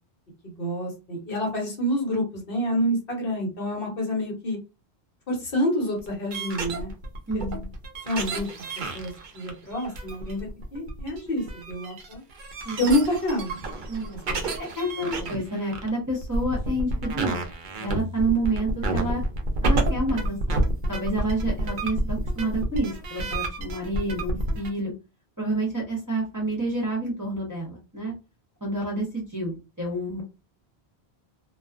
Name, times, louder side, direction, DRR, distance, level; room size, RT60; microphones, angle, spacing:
voice 1, 0.4-4.6 5.3-6.9 8.0-12.2 12.8-13.6 14.1-14.4 15.0-15.3, equal, 60° left, 0 dB, 1.1 m, -28 dB
sound 1, 6.0-24.7, right 1 dB, 55° right, 0.6 m, -29 dB
voice 2, 7.3-7.7 12.6-12.8 13.9-14.1 14.6-17.4 17.8-19.2 19.6-20.4 20.9-24.9 25.4-28.1 28.6-30.2, right 2 dB, 20° right, -5 dB, 0.9 m, -29 dB
2.3 x 2.3 x 2.4 m, 0.28 s
omnidirectional pair, 1.1 m